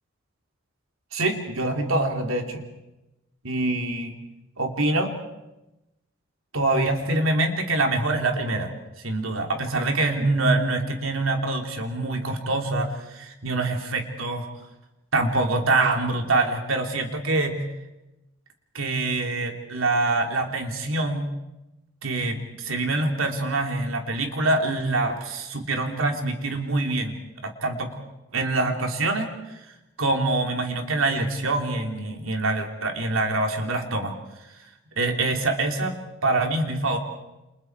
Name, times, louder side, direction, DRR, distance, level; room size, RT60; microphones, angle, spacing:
voice 1, 1.1-2.6 3.4-4.1 4.6-5.2 6.5-8.7 9.0-14.5 15.1-17.6 18.7-21.3 22.0-27.2 27.4-28.0 28.3-29.6 30.0-34.1 35.0-35.9 36.2-37.0, right 2 dB, 85° right, 4 dB, 3.0 m, -25 dB
29.5 x 27.5 x 4.6 m, 0.96 s
head